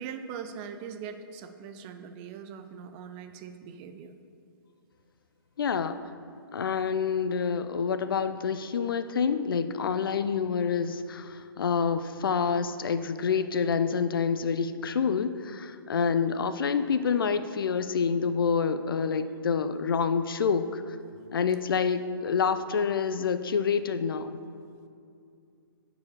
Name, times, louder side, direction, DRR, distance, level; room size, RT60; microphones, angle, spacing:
voice 1, 0.0-4.1 15.9-16.3 21.1-21.7, right 7 dB, 30° right, 8 dB, 0.6 m, -42 dB
voice 2, 5.6-6.0 6.5-21.0 21.3-24.4, left 6 dB, 65° left, 11 dB, 0.6 m, -27 dB
10.5 x 5.0 x 6.7 m, 2.4 s
hypercardioid pair, 135°, 12 cm